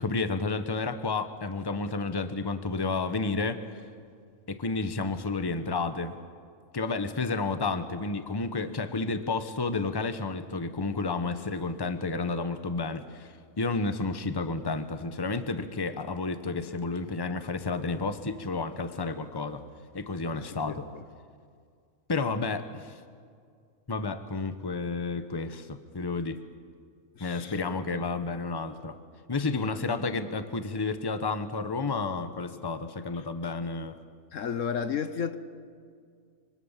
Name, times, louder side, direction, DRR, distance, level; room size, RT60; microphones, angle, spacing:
voice 1, 0.0-3.6 4.5-6.2 6.7-19.6 19.9-20.9 22.1-23.0 23.9-26.4 27.2-29.0 29.3-34.0, left 3 dB, 20° left, 1.0 m, -31 dB
voice 2, 20.3-21.0 27.2-27.6 34.3-35.4, left 7 dB, 65° left, 1.3 m, -33 dB
26.0 x 24.5 x 7.4 m
omnidirectional pair, 1.4 m